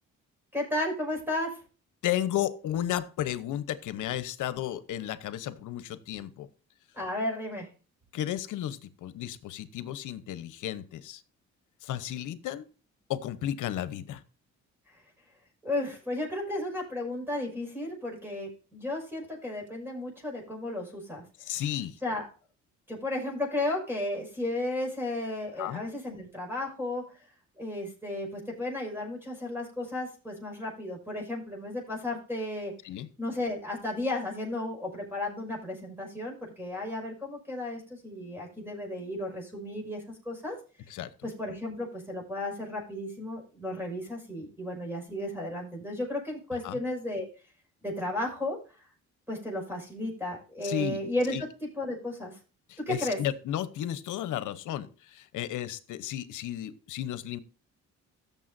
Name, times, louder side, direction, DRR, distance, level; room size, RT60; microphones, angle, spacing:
voice 1, 0.5-1.6 6.9-7.7 15.6-21.2 22.0-22.3 22.9-27.2 27.6-32.7 33.2-40.6 41.2-47.3 47.8-48.6 49.3-51.5 51.8-52.4 52.9-53.2, left 1 dB, 5° right, 0 dB, 5.7 m, -34 dB
voice 2, 2.0-6.5 8.1-11.2 11.8-12.7 13.1-14.2 21.4-22.0 25.6-25.8 32.8-33.1 40.9-41.1 46.6-46.8 50.6-51.0 51.3-51.5 52.7-57.4, left 12 dB, 80° left, 14 dB, 1.0 m, -33 dB
15.5 x 7.1 x 2.6 m, 0.35 s
cardioid pair, 90°, 30 cm